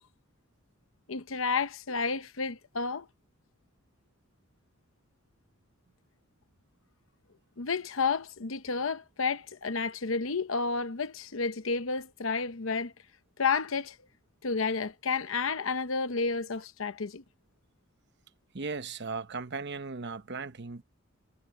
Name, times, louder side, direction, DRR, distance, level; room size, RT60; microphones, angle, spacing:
voice 1, 1.1-3.1 7.6-12.9 13.4-14.0 14.4-17.2, left 4 dB, 75° left, 0.9 m, -31 dB
voice 2, 18.5-20.8, right 4 dB, 60° right, 1.0 m, -37 dB
head